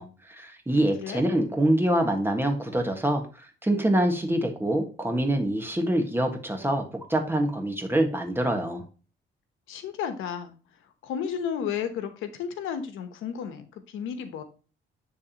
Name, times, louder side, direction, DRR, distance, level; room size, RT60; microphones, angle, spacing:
voice 1, 0.0-8.8, right 1 dB, 10° right, 3 dB, 1.6 m, -25 dB
voice 2, 9.7-10.6 11.0-14.4, left 8 dB, 90° left, 9 dB, 1.0 m, -33 dB
9.6 x 3.6 x 2.9 m, 0.36 s
cardioid pair, 90°, 20 cm